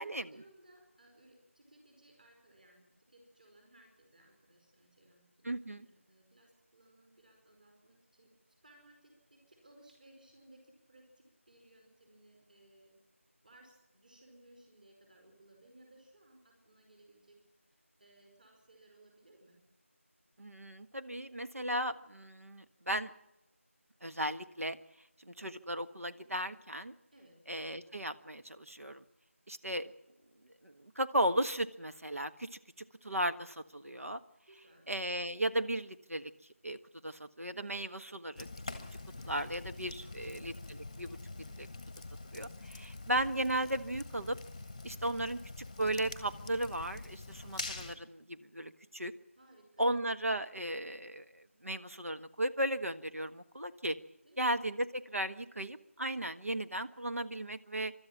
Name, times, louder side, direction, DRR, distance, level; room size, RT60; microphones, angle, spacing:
voice 1, 0.0-8.3 8.6-12.9 13.4-19.6 27.1-27.4 34.5-34.9 40.0-40.5 42.7-43.0 49.4-49.9 54.2-54.5, right 1 dB, 35° right, 2 dB, 4.9 m, -62 dB
voice 2, 5.4-5.9 20.4-23.1 24.0-24.8 25.2-26.9 27.5-29.0 29.5-29.9 30.6-34.2 34.9-36.3 36.6-36.8 37.0-38.5 39.2-41.2 41.6-41.7 42.3-44.4 44.8-45.4 45.8-49.1 49.8-54.0 54.4-57.9, right 1 dB, 80° right, 8 dB, 1.5 m, -36 dB
Fire, 38.4-48.0, left 2 dB, 15° left, 1.0 m, -45 dB
29.5 x 13.0 x 7.2 m, 0.93 s
figure-of-eight pair, 175°, 8 cm